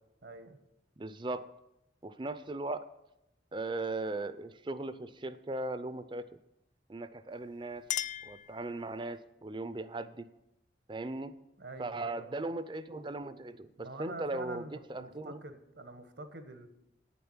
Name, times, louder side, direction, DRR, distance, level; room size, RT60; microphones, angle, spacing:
voice 1, 0.2-0.6 11.6-12.3 13.8-16.7, right 2 dB, 80° right, 8 dB, 1.3 m, -46 dB
voice 2, 1.0-1.5 2.0-2.9 3.5-6.3 6.9-7.8 8.2-10.3 10.9-11.4 11.8-13.7 14.0-15.4, right 2 dB, 25° right, 13 dB, 0.5 m, -38 dB
Chink clink, 7.3-9.2, left 12 dB, 45° left, 0.3 m, -39 dB
9.2 x 6.9 x 8.9 m, 0.86 s
head